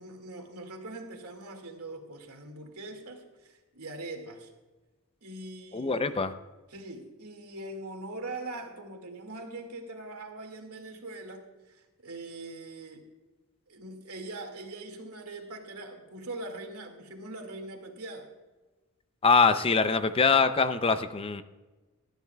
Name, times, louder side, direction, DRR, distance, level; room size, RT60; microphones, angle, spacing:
voice 1, 0.0-4.5 5.2-6.2 6.7-13.1 13.7-18.3, right 2 dB, 80° right, 3 dB, 2.2 m, -42 dB
voice 2, 5.7-6.3 19.2-21.4, left 4 dB, 25° left, 11 dB, 0.5 m, -23 dB
18.5 x 12.5 x 2.3 m, 1.2 s
head